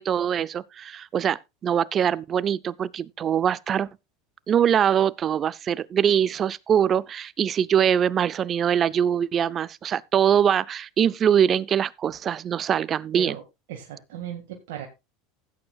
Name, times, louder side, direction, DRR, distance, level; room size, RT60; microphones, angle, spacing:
voice 1, 0.0-3.9 4.5-13.4, right 8 dB, 35° right, 0.5 m, -23 dB
voice 2, 13.7-14.9, right 9 dB, 75° right, 1.9 m, -36 dB
16.0 x 8.7 x 2.4 m
supercardioid pair, 100°, 0 cm